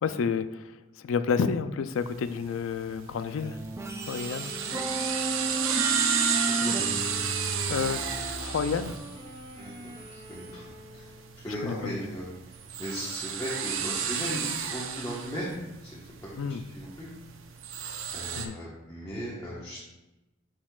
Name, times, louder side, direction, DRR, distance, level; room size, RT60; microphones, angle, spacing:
voice 1, 0.0-3.6 4.0-4.6 6.6-6.7 7.7-9.0 11.6-12.0 16.4-16.6 18.3-18.5, left 6 dB, 70° left, 12 dB, 0.4 m, -30 dB
sound 1, 1.9-18.4, right 7 dB, 70° right, 0.6 m, -33 dB
sound 2, 3.4-9.0, right 2 dB, 15° right, 0.4 m, -33 dB
Wind instrument woodwind instrument, 4.2-11.4, left 1 dB, 30° right, 2.2 m, -44 dB
voice 2, 9.6-9.9 10.3-10.6 10.9-11.1 11.4-16.3 16.7-17.1 18.1-19.8, equal, 15° left, -8 dB, 1.1 m, -37 dB
10.0 x 4.3 x 2.3 m, 1.0 s
head